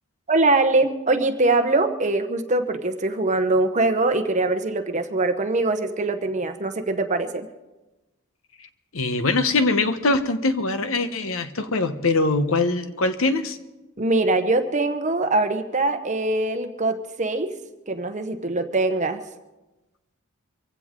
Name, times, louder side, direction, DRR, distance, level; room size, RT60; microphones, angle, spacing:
voice 1, 0.3-7.5 14.0-17.5 17.9-19.2, right 2 dB, 35° right, 8 dB, 1.0 m, -22 dB
voice 2, 8.9-13.6, left 3 dB, 70° left, 11 dB, 1.0 m, -22 dB
24.0 x 16.0 x 3.7 m, 1.1 s
head